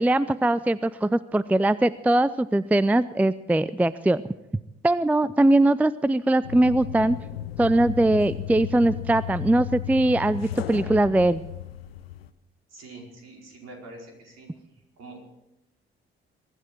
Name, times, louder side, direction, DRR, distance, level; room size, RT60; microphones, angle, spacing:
voice 1, 0.0-4.2 4.8-7.2 7.6-11.4, right 1 dB, 5° right, 18 dB, 0.5 m, -21 dB
sound 1, 6.4-12.3, left 12 dB, 80° left, 0.7 m, -35 dB
voice 2, 12.7-14.5 15.0-15.3, right 2 dB, 55° right, 0 dB, 4.9 m, -44 dB
23.0 x 12.5 x 4.6 m, 0.89 s
figure-of-eight pair, 45°, 30 cm